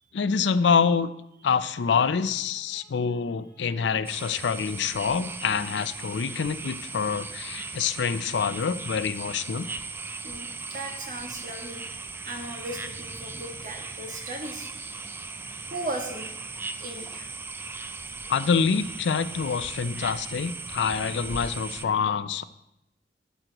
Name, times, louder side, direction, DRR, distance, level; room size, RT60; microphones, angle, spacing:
voice 1, 0.1-1.1 1.4-9.7 18.3-22.4, left 6 dB, 85° left, 14 dB, 0.4 m, -26 dB
sound 1, 4.1-21.9, right 3 dB, 15° right, 0.3 m, -38 dB
voice 2, 10.2-11.8 12.2-15.0 15.7-16.3 16.8-17.3, right 1 dB, 50° right, 1 dB, 1.6 m, -37 dB
12.0 x 7.7 x 3.0 m, 0.85 s
head